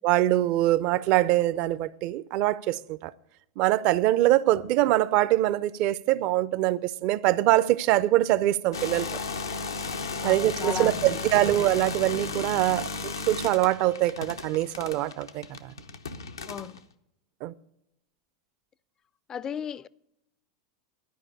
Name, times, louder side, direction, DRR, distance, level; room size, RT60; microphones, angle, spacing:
voice 1, 0.0-3.1 3.6-9.2 10.2-15.7 17.4-17.5, right 15 dB, 50° right, 0.4 m, -24 dB
sound 1, 8.7-16.8, left 3 dB, 90° left, 0.6 m, -34 dB
voice 2, 10.2-11.5 16.4-16.8 19.3-19.9, left 8 dB, 30° left, 0.3 m, -36 dB
12.0 x 5.1 x 8.6 m
hypercardioid pair, 95°, 2 cm